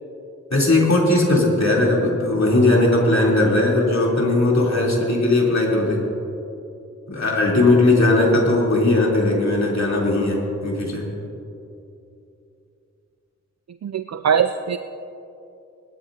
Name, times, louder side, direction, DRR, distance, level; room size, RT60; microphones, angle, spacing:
voice 1, 0.5-6.0 7.1-11.0, left 2 dB, 65° left, -4 dB, 3.5 m, -18 dB
voice 2, 13.8-14.8, right 7 dB, 65° right, 9 dB, 0.4 m, -21 dB
20.5 x 13.0 x 2.8 m, 2.8 s
wide cardioid pair, 45°, 29 cm